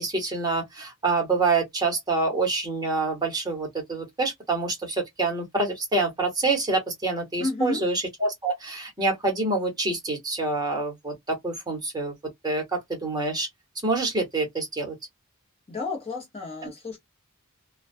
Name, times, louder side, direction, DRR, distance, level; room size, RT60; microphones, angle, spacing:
voice 1, 0.0-12.1 12.4-13.5 13.8-15.0, right 3 dB, 20° right, 0.9 m, -26 dB
voice 2, 7.4-7.8 15.7-17.0, left 3 dB, 25° left, 0.8 m, -31 dB
2.3 x 2.2 x 2.4 m
head